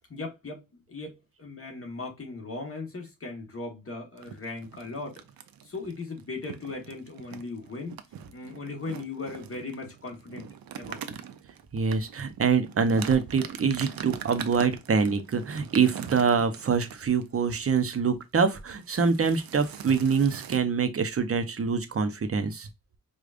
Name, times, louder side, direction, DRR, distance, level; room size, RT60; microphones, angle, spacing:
voice 1, 0.1-5.2 5.6-8.0 8.3-10.5 10.8-11.0, left 3 dB, 40° left, 1.3 m, -38 dB
sound 1, 4.2-17.4 17.8-18.0 18.2-18.5 18.8-20.6, right 9 dB, 85° right, 0.5 m, -43 dB
voice 2, 11.7-22.7, right 5 dB, 40° right, 0.7 m, -25 dB
4.9 x 2.4 x 2.4 m
wide cardioid pair, 105°, 34 cm